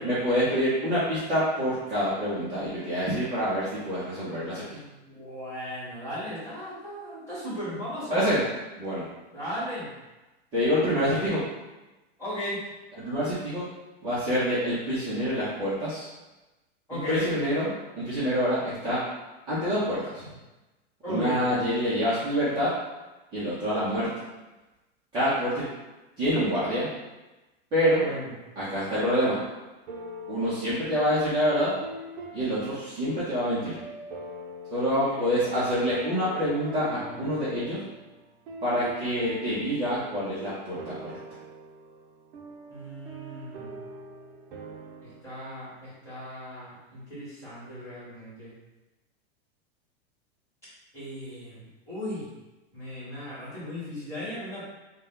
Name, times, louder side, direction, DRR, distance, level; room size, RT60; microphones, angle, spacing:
voice 1, 0.0-4.6 8.1-8.4 8.8-9.0 10.5-11.4 13.0-13.6 14.0-16.1 16.9-19.0 19.5-20.3 21.1-22.7 23.3-24.1 25.1-25.6 26.2-26.9 27.7-28.1 28.6-29.4 30.3-31.7 32.3-33.7 34.7-37.8 38.6-41.2, equal, 15° right, -12 dB, 0.7 m, -26 dB
voice 2, 4.3-8.2 9.3-9.9 12.2-12.6 16.9-17.3 21.0-21.4 28.0-28.3 34.9-35.3 42.7-43.7 45.0-48.5 50.9-52.3 52.7-54.7, equal, 10° left, -11 dB, 1.3 m, -37 dB
sound 1, 28.6-29.5 29.9-45.2, equal, 55° right, 0.7 m, -43 dB
4.0 x 2.2 x 3.6 m, 1.1 s
supercardioid pair, 175°, 31 cm